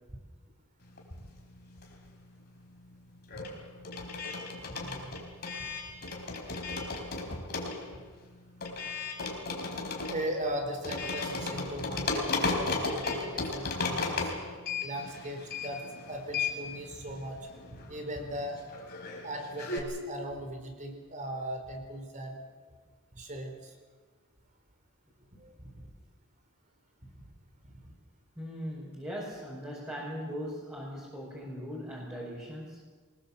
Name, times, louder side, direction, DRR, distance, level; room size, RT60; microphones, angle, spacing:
sound 1, 1.0-2.2 2.5-19.8, left 3 dB, 45° left, 4.2 m, -35 dB
voice 1, 4.6-5.2 6.8-6.9 7.3-7.4 10.1-14.3 14.8-15.8 16.1-17.4 17.7-18.6 19.2-22.4 23.1-23.8 25.4-25.9 27.6-27.9, right 1 dB, 35° right, 4 dB, 4.5 m, -38 dB
voice 2, 28.4-32.8, equal, 10° right, -4 dB, 5.6 m, -39 dB
24.0 x 20.5 x 7.5 m, 1.5 s
head